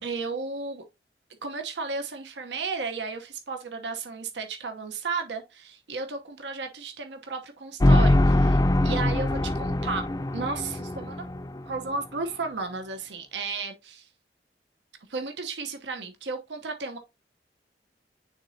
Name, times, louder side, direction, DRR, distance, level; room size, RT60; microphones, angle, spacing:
voice 1, 0.0-0.8 1.4-10.1 10.3-11.3 11.6-14.1 15.1-17.0, right 4 dB, 85° right, 0.9 m, -34 dB
sound 1, 7.8-11.9, left 1 dB, 20° left, 0.4 m, -22 dB
9.6 x 3.9 x 2.7 m
head